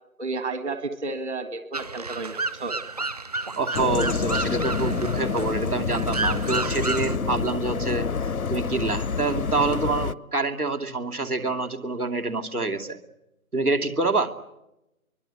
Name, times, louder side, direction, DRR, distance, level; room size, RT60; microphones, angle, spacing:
voice 1, 0.2-2.7, right 3 dB, 50° right, 10 dB, 1.9 m, -32 dB
sound 1, 1.7-7.2, right 3 dB, 25° right, 0.8 m, -31 dB
voice 2, 3.6-13.0 13.5-14.3, right 3 dB, 85° right, 5 dB, 3.0 m, -27 dB
sound 2, 3.7-10.1, left 5 dB, 75° left, 0.8 m, -28 dB
23.5 x 23.5 x 8.3 m, 0.91 s
figure-of-eight pair, 150°, 44 cm